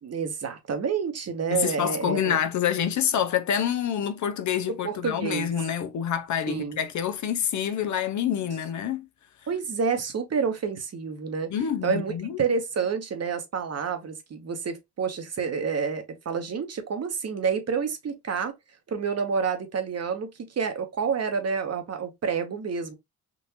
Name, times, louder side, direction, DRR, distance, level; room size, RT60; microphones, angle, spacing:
voice 1, 0.0-2.4 4.8-5.5 6.5-6.8 9.5-11.5 11.8-18.5 18.9-20.3 20.6-22.9, right 6 dB, 40° right, 1.0 m, -29 dB
voice 2, 1.5-9.1 11.5-12.4, left 9 dB, 50° left, 0.6 m, -27 dB
3.8 x 2.5 x 2.9 m
cardioid pair, 80°, 38 cm